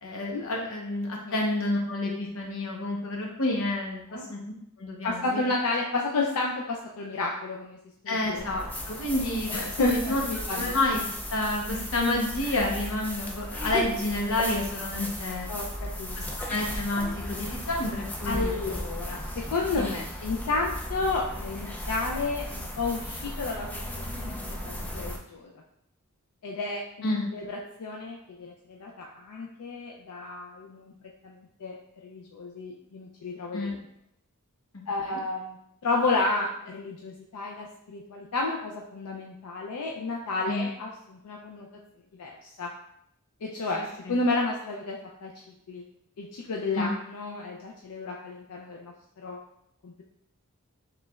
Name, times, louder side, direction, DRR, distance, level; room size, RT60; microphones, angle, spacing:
voice 1, 0.0-4.4 4.8-5.4 8.1-10.2 10.5-11.0 11.3-15.5 16.4-18.7 19.8-19.9 27.0-27.3 33.5-33.8 35.0-35.1 40.5-40.7 44.1-44.2 46.7-47.0, left 2 dB, 65° left, 0 dB, 0.9 m, -29 dB
voice 2, 5.0-7.8 8.0-8.4 9.5-10.8 15.5-16.4 18.2-23.9 24.2-24.4 24.6-25.5 26.4-30.9 31.2-31.8 32.0-33.9 34.9-35.6 35.8-41.7 42.2-42.7 43.4-45.3 45.7-45.8 46.2-48.9 49.2-49.4 49.8-50.0, left 3 dB, 90° left, -1 dB, 0.5 m, -31 dB
sound 1, 8.4-25.2, equal, 5° left, 0.4 m, -36 dB
4.9 x 3.3 x 2.3 m, 0.75 s
head